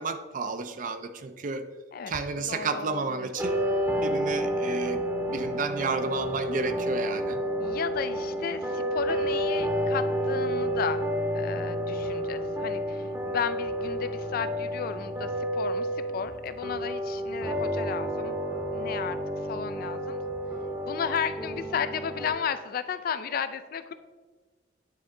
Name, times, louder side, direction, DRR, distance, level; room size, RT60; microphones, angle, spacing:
voice 1, 0.0-1.7 2.1-3.6 4.0-7.4, right 4 dB, 45° right, 10 dB, 0.4 m, -32 dB
voice 2, 1.9-3.3 7.6-11.1 11.3-18.4 18.7-19.2 19.5-20.2 20.9-23.9, left 7 dB, 50° left, 12 dB, 0.3 m, -34 dB
sound 1, 3.4-22.3, equal, 15° right, 0.8 m, -30 dB
9.2 x 3.7 x 3.8 m, 1.4 s
head